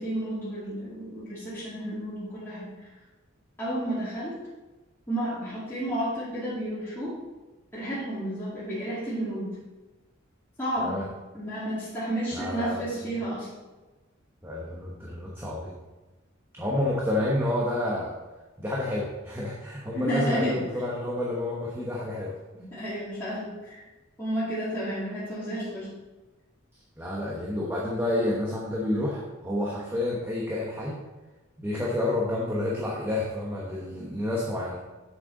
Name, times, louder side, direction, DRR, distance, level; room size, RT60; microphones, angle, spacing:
voice 1, 0.0-2.9 3.6-4.4 5.1-7.2 7.7-9.6 10.6-11.0 11.3-13.5 19.9-20.6 22.7-23.8 24.2-25.9, right 1 dB, 10° left, -11 dB, 2.4 m, -31 dB
voice 2, 12.3-12.8 14.4-15.7 16.6-18.1 18.6-22.4 27.0-31.0 31.6-34.8, left 1 dB, 10° right, -4 dB, 1.1 m, -29 dB
7.8 x 7.6 x 3.9 m, 1.1 s
head